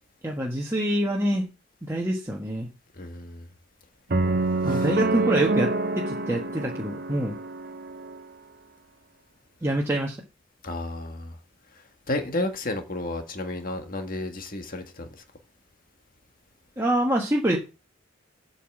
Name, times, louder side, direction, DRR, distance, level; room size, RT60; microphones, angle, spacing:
voice 1, 0.2-1.5 1.8-2.7 4.6-7.4 9.6-10.2 16.8-17.6, right 1 dB, 15° right, 1.3 m, -26 dB
voice 2, 3.0-3.5 4.7-4.9 10.6-11.3 12.1-15.1, left 2 dB, 45° left, 1.7 m, -32 dB
sound 1, 4.1-8.2, right 2 dB, 50° right, 0.9 m, -27 dB
8.3 x 5.8 x 7.2 m
head